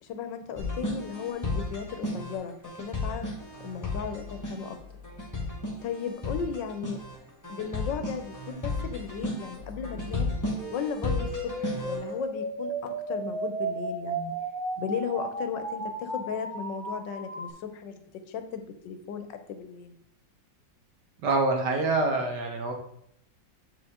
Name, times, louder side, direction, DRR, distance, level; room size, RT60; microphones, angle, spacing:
voice 1, 0.0-4.8 5.8-7.0 7.5-10.3 10.7-14.3 14.8-17.9 18.3-19.9, left 7 dB, 80° left, 8 dB, 1.4 m, -36 dB
sound 1, 0.6-12.1, left 2 dB, 10° left, 1.4 m, -34 dB
sound 2, 10.5-17.5, right 2 dB, 50° right, 2.3 m, -34 dB
voice 2, 21.2-22.7, right 3 dB, 65° right, 2 dB, 1.7 m, -26 dB
7.8 x 5.0 x 3.6 m, 0.73 s
omnidirectional pair, 2.0 m